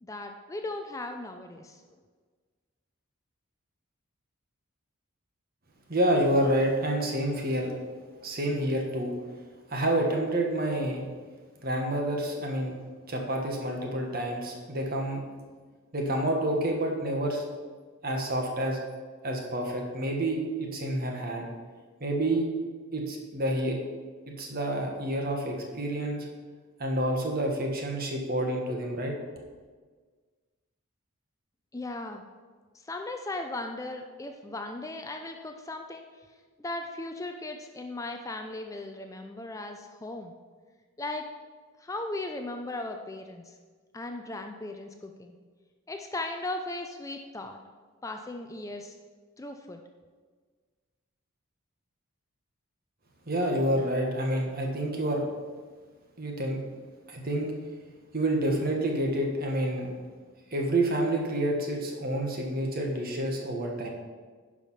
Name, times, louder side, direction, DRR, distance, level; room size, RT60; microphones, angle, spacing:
voice 1, 0.0-1.8 31.7-32.2 32.7-36.1 36.6-40.3 41.0-41.2 41.8-43.6 43.9-45.3 45.9-47.6 48.0-49.0 49.4-49.8, left 2 dB, 15° left, 5 dB, 0.4 m, -37 dB
voice 2, 5.9-7.7 8.2-9.1 9.7-11.1 11.6-12.8 13.1-15.2 15.9-17.4 18.0-18.8 19.2-21.5 22.0-22.5 22.9-23.8 24.3-26.3 26.8-29.1 53.3-55.2 56.2-56.6 57.1-57.5 58.1-59.9 60.5-63.9, right 1 dB, 45° right, 1 dB, 1.5 m, -28 dB
10.5 x 4.9 x 5.7 m, 1.5 s
head